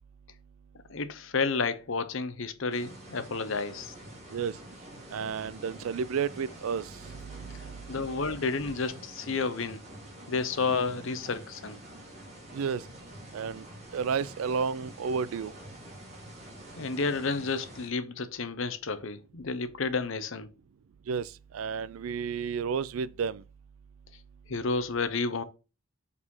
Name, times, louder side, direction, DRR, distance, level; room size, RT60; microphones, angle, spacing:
voice 1, 0.9-3.9 7.9-9.8 10.3-11.8 16.8-20.5 24.5-25.4, left 4 dB, 65° left, 0.8 m, -31 dB
sound 1, 2.7-17.9, right 1 dB, 30° right, 1.8 m, -47 dB
voice 2, 5.1-7.9 12.5-12.8 13.3-13.7 13.9-15.5 21.1-23.4, right 6 dB, 75° right, 0.4 m, -32 dB
4.9 x 4.1 x 5.4 m
head